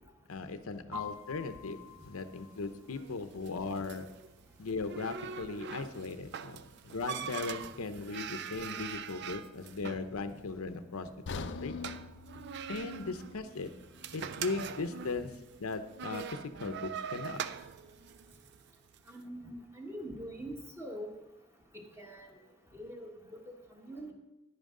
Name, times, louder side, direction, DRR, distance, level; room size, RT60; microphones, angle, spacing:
voice 1, 0.3-4.1 4.6-11.1 11.3-11.8 12.7-13.7 14.1-15.3 15.6-17.4, left 4 dB, 90° left, 10 dB, 0.7 m, -38 dB
sound 1, 0.9-8.7, left 6 dB, 80° right, 1.7 m, -52 dB
sound 2, 1.9-19.1, right 8 dB, 55° right, 0.4 m, -44 dB
sound 3, 11.3-15.3 15.7-15.8 16.4-16.5, left 4 dB, 55° left, 0.5 m, -45 dB
voice 2, 19.1-21.1 22.0-22.3 22.7-23.1 23.5-24.1, equal, 10° right, 1 dB, 1.3 m, -43 dB
10.5 x 9.7 x 3.8 m, 1.0 s
head